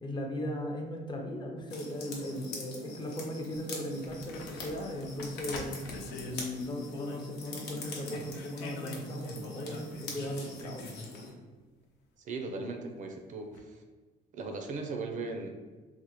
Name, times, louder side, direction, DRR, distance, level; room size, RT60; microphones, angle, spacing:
voice 1, 0.0-5.8 6.3-11.2, equal, 25° left, 1 dB, 0.5 m, -38 dB
sound 1, 1.7-11.3, left 3 dB, 70° left, 0.8 m, -44 dB
sound 2, 4.0-7.6 7.8-11.0 13.5-13.6, left 3 dB, 90° left, 0.4 m, -45 dB
voice 2, 12.2-13.8 14.3-15.5, right 3 dB, 50° right, 4 dB, 0.4 m, -38 dB
3.4 x 2.1 x 2.9 m, 1.3 s
cardioid pair, 110°, 17 cm